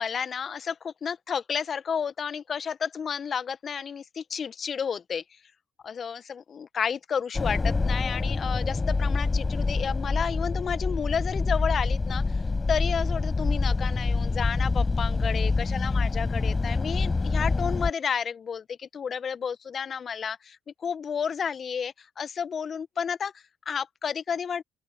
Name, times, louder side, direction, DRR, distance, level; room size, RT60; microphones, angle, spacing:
voice 1, 0.0-5.2 5.8-12.4 12.7-24.6, left 7 dB, 45° left, 1.3 m, -31 dB
sound 1, 7.3-17.9, left 3 dB, 25° left, 5.0 m, -26 dB
open air
hypercardioid pair, 50°, 0 cm